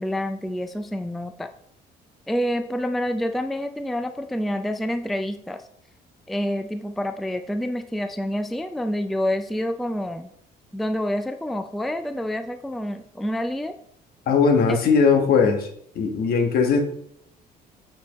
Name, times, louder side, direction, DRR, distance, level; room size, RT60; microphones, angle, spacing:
voice 1, 0.0-1.5 2.3-5.6 6.3-10.3 10.7-13.7 14.7-14.8, equal, ahead, 8 dB, 0.3 m, -27 dB
voice 2, 14.3-15.7 15.9-16.8, left 5 dB, 65° left, 3 dB, 1.2 m, -19 dB
8.3 x 4.5 x 3.1 m, 0.68 s
cardioid pair, 110°, 17 cm